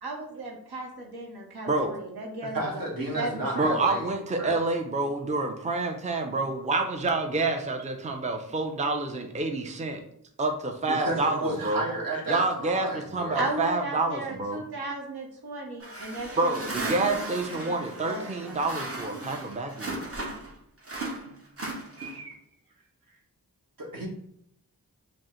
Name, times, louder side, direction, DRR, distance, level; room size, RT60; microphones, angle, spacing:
voice 1, 0.0-2.8 3.1-3.7 13.3-16.9 17.2-17.3 18.1-18.6 22.0-22.3, right 2 dB, 85° right, 1 dB, 0.8 m, -36 dB
voice 2, 2.5-4.1 4.4-4.6 10.9-13.5 23.8-24.1, right 1 dB, 65° right, 0 dB, 1.1 m, -32 dB
voice 3, 3.5-10.0 10.4-11.8 12.3-14.6 16.4-20.0, right 2 dB, 20° right, 3 dB, 0.5 m, -28 dB
sound 1, 15.8-20.5 20.8-22.3, right 2 dB, 40° right, 0.9 m, -36 dB
5.2 x 2.1 x 3.0 m, 0.70 s
cardioid pair, 40°, 37 cm